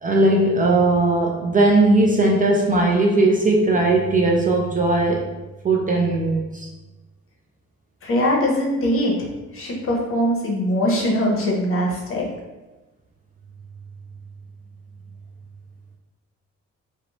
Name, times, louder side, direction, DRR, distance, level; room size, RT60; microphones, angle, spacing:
voice 1, 0.0-5.2 5.6-6.7, right 2 dB, 30° right, -1 dB, 0.3 m, -18 dB
voice 2, 8.0-9.3 9.5-12.3, equal, 45° left, -2 dB, 0.7 m, -21 dB
2.4 x 2.1 x 2.9 m, 1.1 s
cardioid pair, 90°, 30 cm